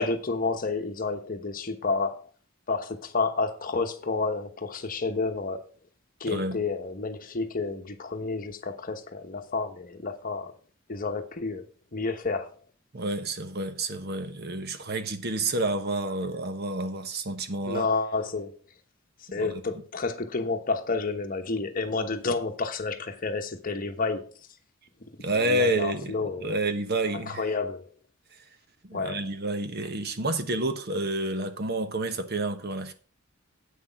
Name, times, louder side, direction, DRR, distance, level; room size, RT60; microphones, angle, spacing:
voice 1, 0.0-2.3 2.7-5.6 6.2-10.5 10.9-11.7 11.9-12.5 17.6-18.5 19.3-24.3 25.3-26.6 27.3-27.9 28.9-29.3, left 3 dB, 40° left, 1.1 m, -30 dB
voice 2, 6.3-6.6 12.9-17.9 19.3-19.5 25.2-27.5 28.8-32.9, right 2 dB, 50° right, 1.1 m, -29 dB
8.4 x 6.2 x 5.7 m
head